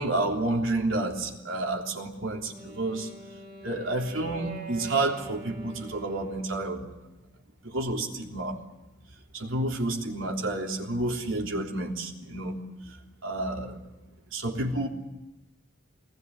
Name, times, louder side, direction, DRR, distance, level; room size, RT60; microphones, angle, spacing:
voice 1, 0.0-3.1 3.6-6.8 7.6-8.6 9.3-12.7 13.2-13.8 14.3-14.9, right 2 dB, 85° right, 1 dB, 3.5 m, -30 dB
Wind instrument woodwind instrument, 2.3-6.8, right 4 dB, 45° right, 3.6 m, -44 dB
23.0 x 19.5 x 9.6 m, 1.0 s
head